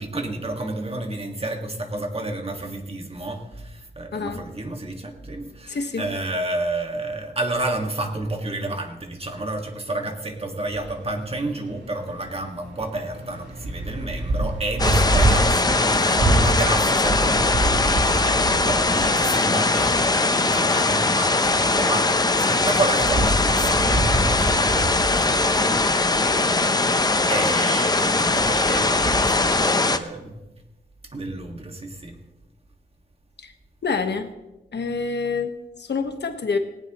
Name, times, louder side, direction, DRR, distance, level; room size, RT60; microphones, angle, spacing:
voice 1, 0.0-30.4 31.1-32.2, right 2 dB, 30° right, 3 dB, 1.9 m, -30 dB
voice 2, 4.1-4.4 5.7-6.1 33.4-33.5 33.8-34.3 34.7-36.6, left 4 dB, 60° left, 6 dB, 1.3 m, -27 dB
sound 1, 10.7-27.5 27.8-29.7, right 1 dB, 65° right, 3.8 m, -28 dB
sound 2, 14.8-30.0, left 3 dB, 20° left, 0.7 m, -21 dB
19.0 x 18.0 x 3.1 m, 1.0 s
wide cardioid pair, 140°, 20 cm